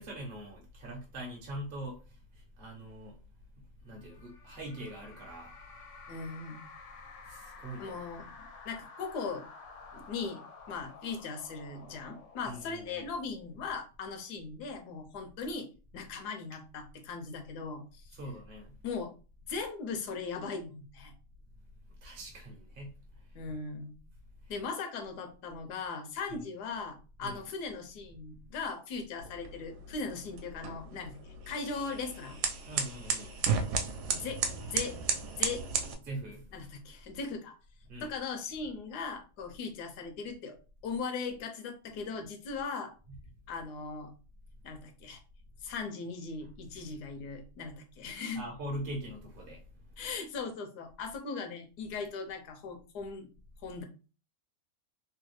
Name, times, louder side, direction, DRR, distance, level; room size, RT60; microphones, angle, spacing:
voice 1, 0.0-3.2 3.8-5.6 7.2-8.0 12.4-13.1 18.1-18.8 22.0-23.4 24.4-24.5 26.3-26.5 27.2-27.4 32.6-33.4 36.0-36.5 37.9-38.1 43.1-43.2 48.3-49.6, right 1 dB, 50° right, 0.7 m, -43 dB
sound 1, 4.0-13.6, left 4 dB, 65° left, 0.8 m, -52 dB
voice 2, 6.1-6.7 7.8-9.5 9.9-10.4 10.7-15.7 15.9-18.0 18.8-19.1 19.4-21.1 23.3-23.9 24.5-32.4 33.7-33.8 34.1-35.0 35.4-35.6 36.5-37.5 38.0-42.9 43.5-44.1 44.6-45.2 45.6-48.5 50.0-53.3 53.6-53.8, left 4 dB, 80° left, 1.2 m, -39 dB
sound 2, 29.2-35.9, right 6 dB, 75° right, 1.1 m, -34 dB
3.3 x 2.2 x 3.1 m
omnidirectional pair, 1.7 m